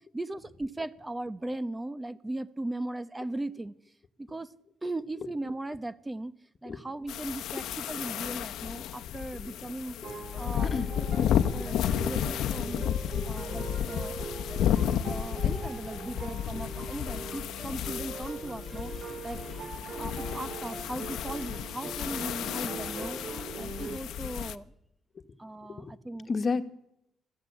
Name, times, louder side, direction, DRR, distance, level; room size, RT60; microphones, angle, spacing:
voice 1, 0.1-3.7 4.3-4.5 4.8-6.3 6.6-12.9 13.2-14.1 14.8-23.2 23.6-24.7 25.4-26.3, right 2 dB, 15° right, 1.0 m, -38 dB
sound 1, 7.1-24.6, left 10 dB, 80° left, 0.9 m, -32 dB
sound 2, 10.0-24.0, right 4 dB, 50° right, 4.7 m, -41 dB
voice 2, 26.3-26.6, left 4 dB, 40° left, 1.7 m, -31 dB
21.0 x 14.5 x 9.7 m
cardioid pair, 90°, 0 cm